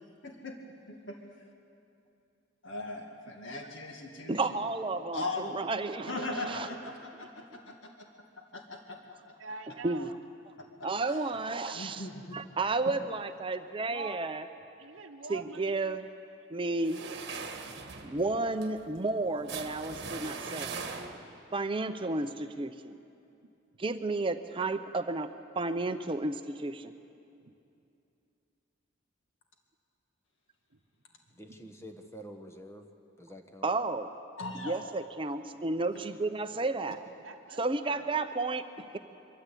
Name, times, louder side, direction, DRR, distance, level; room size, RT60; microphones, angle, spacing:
voice 1, 0.2-0.6 0.9-1.2 2.6-4.4 5.1-5.6 6.1-7.9 8.4-9.3 10.6-10.9 11.7-12.4 34.4-34.8, left 2 dB, 75° left, 2 dB, 1.9 m, -39 dB
voice 2, 4.3-6.7 7.5-7.7 9.8-10.1 10.8-12.1 12.3-14.4 15.3-16.0 16.5-17.0 18.0-20.8 21.5-23.0 23.8-25.3 25.6-26.9 33.6-34.1 34.6-37.0 37.6-39.0, right 3 dB, 25° right, 9 dB, 0.6 m, -32 dB
voice 3, 9.4-10.1 13.9-14.1 14.8-16.0 18.0-18.2 37.2-38.0, right 4 dB, 80° right, 1 dB, 0.8 m, -44 dB
sound 1, 16.8-21.5, right 4 dB, 55° right, 1.4 m, -41 dB
voice 4, 31.3-32.9 33.2-33.7, equal, 15° left, 5 dB, 1.2 m, -47 dB
23.0 x 13.5 x 8.3 m, 2.7 s
head